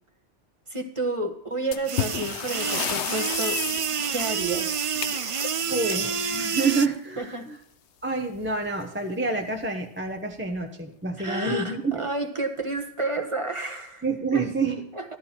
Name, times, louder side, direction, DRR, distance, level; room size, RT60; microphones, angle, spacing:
voice 1, 0.7-3.6 4.0-4.8 7.2-7.5 11.2-14.0 14.3-14.4 14.9-15.2, right 2 dB, 25° right, 4 dB, 1.3 m, -30 dB
sound 1, 1.7-7.1 8.3-8.5 8.8-8.9 9.6-9.7 10.3-10.6, left 9 dB, 75° left, 1.0 m, -33 dB
sound 2, 1.9-6.9, right 6 dB, 50° right, 0.4 m, -28 dB
voice 2, 5.7-7.6 8.0-12.0 14.0-14.8, right 4 dB, 10° right, 2 dB, 0.8 m, -28 dB
14.0 x 12.0 x 4.4 m, 0.71 s
omnidirectional pair, 1.2 m